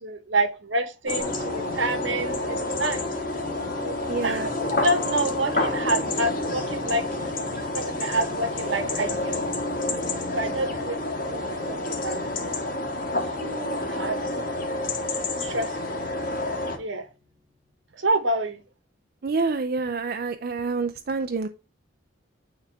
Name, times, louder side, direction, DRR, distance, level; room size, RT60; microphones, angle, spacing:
voice 1, 0.0-3.0 3.7-4.0 4.2-7.1 7.7-9.4 10.3-11.0 11.3-12.6 13.4-14.9 15.4-16.0 16.8-17.1 17.9-18.6, right 2 dB, 75° right, 1.4 m, -28 dB
sound 1, 1.1-16.8, left 2 dB, 45° left, 1.8 m, -29 dB
sound 2, 1.2-17.1, left 4 dB, 10° right, 2.9 m, -41 dB
voice 2, 4.1-4.5 19.2-21.5, right 4 dB, 50° right, 0.5 m, -27 dB
9.5 x 3.5 x 3.4 m
head